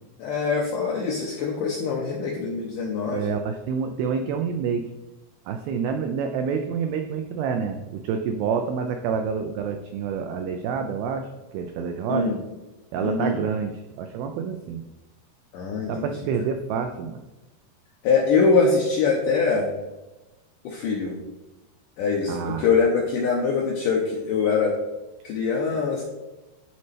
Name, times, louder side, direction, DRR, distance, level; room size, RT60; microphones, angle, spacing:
voice 1, 0.2-3.4 12.1-12.4 13.0-13.4 15.5-16.1 18.0-19.7 20.6-21.1 22.0-24.7 25.2-26.0, left 4 dB, 85° left, -1 dB, 1.9 m, -23 dB
voice 2, 3.1-4.9 5.5-11.3 11.5-12.3 12.9-14.8 15.9-17.2 22.3-22.7, right 6 dB, 90° right, 5 dB, 2.1 m, -28 dB
11.0 x 4.2 x 3.3 m, 1.1 s
omnidirectional pair, 4.9 m